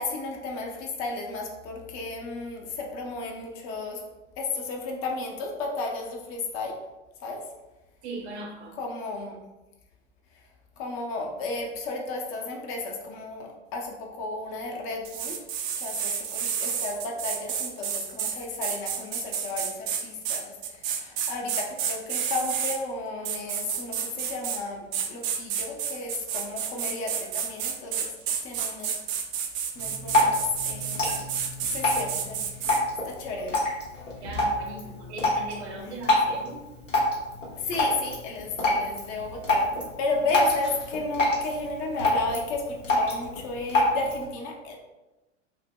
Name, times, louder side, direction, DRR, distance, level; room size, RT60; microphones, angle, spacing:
voice 1, 0.0-4.0 4.4-6.8 7.2-7.4 8.8-9.4 10.8-15.4 15.8-28.1 28.4-28.9 29.8-31.2 31.7-32.5 33.0-33.7 37.6-39.7 40.0-44.8, left 3 dB, 40° left, 1 dB, 0.7 m, -33 dB
voice 2, 8.0-8.8 34.1-36.6, right 2 dB, 60° right, 0 dB, 1.0 m, -39 dB
sound 1, 15.0-22.8 23.2-24.6 24.9-32.8, right 8 dB, 45° right, 0.6 m, -30 dB
Drip, 29.7-44.2, left 1 dB, 85° left, 1.2 m, -27 dB
5.7 x 2.1 x 2.2 m, 1.1 s
figure-of-eight pair, 90°, 37 cm